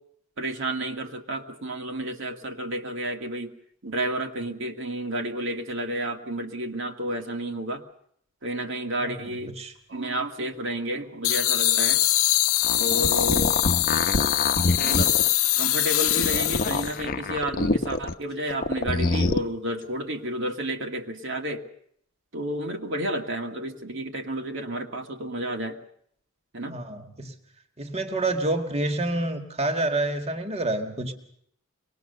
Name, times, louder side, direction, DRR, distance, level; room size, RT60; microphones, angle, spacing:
voice 1, 0.4-3.5 3.8-7.8 8.4-9.5 9.9-12.0 12.8-13.6 14.7-15.2 15.6-21.6 22.3-25.8 26.5-26.8, right 1 dB, 60° right, 3 dB, 2.1 m, -31 dB
voice 2, 9.0-9.7 26.7-27.3 27.8-31.1, right 2 dB, 30° right, 6 dB, 2.1 m, -28 dB
sound 1, 11.2-17.0, left 15 dB, 80° left, 0.9 m, -23 dB
sound 2, 12.5-15.3 16.0-18.1 18.5-19.4, left 3 dB, 45° left, 0.9 m, -25 dB
24.5 x 20.0 x 6.8 m, 0.68 s
head